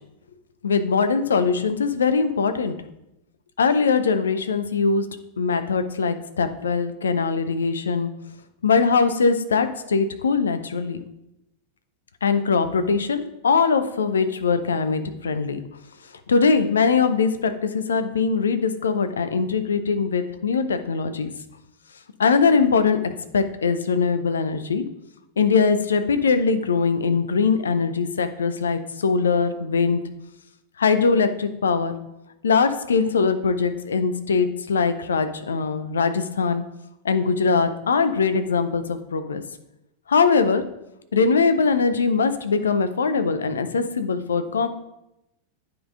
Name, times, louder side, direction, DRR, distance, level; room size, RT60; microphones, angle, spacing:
voice 1, 0.6-2.8 3.6-5.1 5.4-8.1 8.6-11.0 12.2-15.6 16.3-21.3 22.2-24.8 25.4-30.0 30.8-31.9 32.4-36.6 37.0-39.4 40.1-40.6 41.1-44.7, left 5 dB, 70° left, 10 dB, 0.5 m, -21 dB
9.4 x 3.8 x 3.7 m, 0.87 s
figure-of-eight pair, 90°, 0 cm